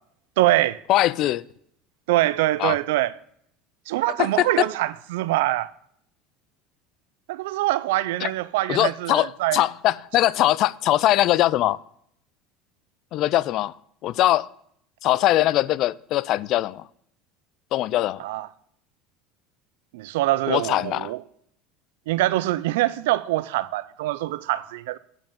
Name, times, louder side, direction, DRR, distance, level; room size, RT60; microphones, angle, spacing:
voice 1, 0.4-0.8 2.1-3.1 3.9-5.7 7.3-9.6 18.2-18.5 19.9-21.2 22.1-25.0, right 16 dB, 85° right, 0.4 m, -24 dB
voice 2, 0.9-1.4 2.6-2.8 4.2-4.5 8.2-8.3 8.7-11.8 13.1-13.7 14.0-14.5 15.0-16.9 17.7-18.2 20.5-21.1, left 14 dB, 55° left, 0.3 m, -21 dB
9.4 x 5.3 x 7.0 m
supercardioid pair, 115°, 0 cm